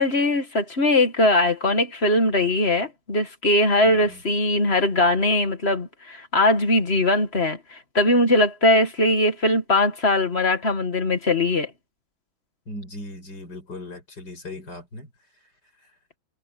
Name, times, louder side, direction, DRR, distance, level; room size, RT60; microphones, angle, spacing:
voice 1, 0.0-11.7, left 1 dB, 30° left, 2.0 m, -21 dB
voice 2, 3.8-4.2 12.7-15.1 15.8-15.9, left 1 dB, 55° left, 7.4 m, -38 dB
omnidirectional pair, 2.2 m